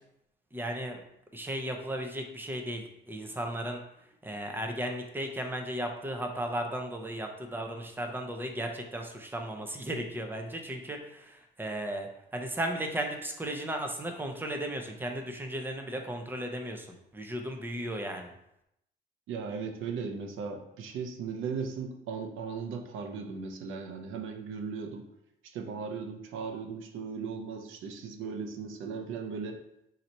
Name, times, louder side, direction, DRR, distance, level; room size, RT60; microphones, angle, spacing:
voice 1, 0.5-1.0 1.3-3.8 4.2-16.9 17.1-18.3, right 1 dB, 10° right, 3 dB, 0.7 m, -35 dB
voice 2, 19.3-25.0 25.4-29.6, right 5 dB, 85° right, 4 dB, 0.6 m, -37 dB
3.9 x 2.9 x 4.4 m, 0.80 s
cardioid pair, 90°, 20 cm